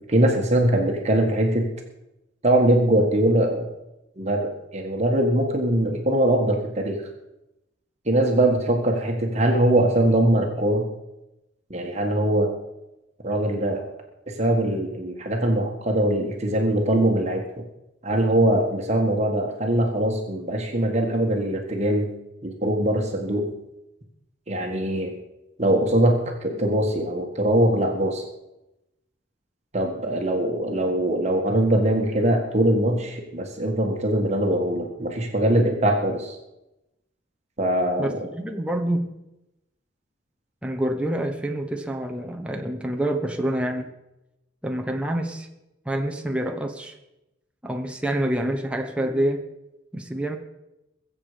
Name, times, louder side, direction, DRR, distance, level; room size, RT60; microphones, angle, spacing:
voice 1, 0.1-1.7 2.4-3.7 4.2-7.0 8.1-10.8 11.7-12.5 13.2-13.9 14.3-17.4 18.0-22.1 22.4-23.5 24.5-25.1 25.6-28.2 29.7-36.4 37.6-38.2, right 1 dB, 35° right, 2 dB, 1.8 m, -22 dB
voice 2, 38.0-39.1 40.6-43.9 44.6-45.5 45.8-46.9 47.6-49.4 49.9-50.4, right 1 dB, 5° right, 2 dB, 1.1 m, -27 dB
22.0 x 7.7 x 5.1 m, 0.93 s
head